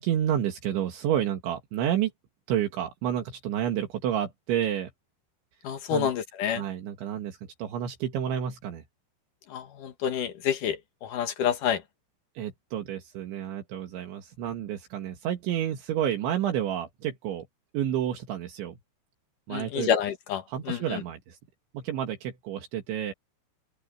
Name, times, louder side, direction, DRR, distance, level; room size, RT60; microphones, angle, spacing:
voice 1, 0.0-2.1 2.5-4.9 5.9-6.1 6.6-8.8 12.4-17.5 17.7-18.8 19.5-19.9 20.5-21.4 21.7-23.1, right 10 dB, 75° right, 4.2 m, -30 dB
voice 2, 5.6-6.6 9.5-11.8 19.5-21.0, left 8 dB, 60° left, 2.4 m, -28 dB
open air
omnidirectional pair, 5.4 m